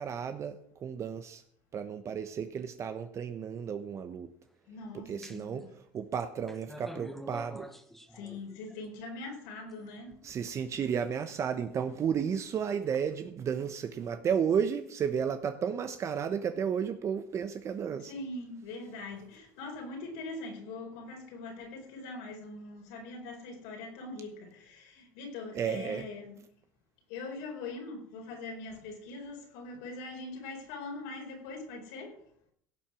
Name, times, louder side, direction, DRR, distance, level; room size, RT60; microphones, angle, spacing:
voice 1, 0.0-1.4 1.7-4.3 4.9-7.7 10.2-18.1 25.5-26.1, right 7 dB, 40° right, 0.9 m, -33 dB
voice 2, 4.7-5.7 8.1-10.2 18.0-26.4 27.1-32.2, left 3 dB, 85° left, 4.4 m, -42 dB
sound 1, 5.2-5.6 6.1-8.8 9.7-10.5, equal, 5° left, 1.3 m, -46 dB
17.0 x 7.4 x 6.2 m
supercardioid pair, 115°, 8 cm